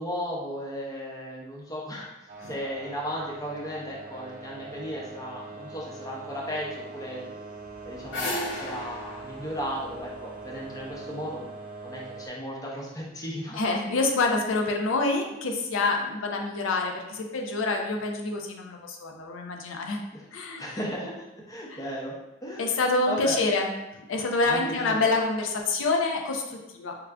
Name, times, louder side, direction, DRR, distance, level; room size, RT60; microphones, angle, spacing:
voice 1, 0.0-2.1 2.5-7.4 7.8-11.5 11.8-13.6 20.1-20.2 20.6-22.2 22.4-22.7 23.1-23.4 24.4-25.0, equal, 20° left, -4 dB, 0.6 m, -35 dB
sound 1, 2.3-12.3, right 3 dB, 45° right, 0.4 m, -42 dB
sound 2, 7.6-10.8, left 1 dB, 65° left, 1.0 m, -35 dB
voice 2, 13.5-20.0 20.3-20.7 21.7-21.8 22.6-27.0, left 3 dB, 85° left, 2 dB, 0.5 m, -27 dB
4.4 x 2.4 x 2.2 m, 0.93 s
head